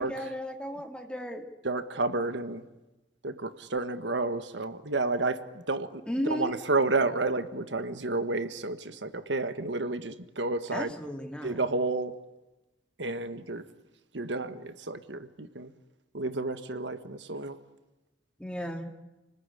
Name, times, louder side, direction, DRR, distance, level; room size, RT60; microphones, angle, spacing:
voice 1, 0.0-1.5 6.1-6.5 10.7-11.6 18.4-18.9, equal, 5° left, 4 dB, 2.5 m, -34 dB
voice 2, 1.6-2.6 3.2-6.0 6.3-10.9 11.4-12.1 13.0-13.6 14.1-15.7 16.1-17.5, right 3 dB, 75° right, 11 dB, 1.5 m, -31 dB
30.0 x 20.0 x 9.9 m, 1.1 s
head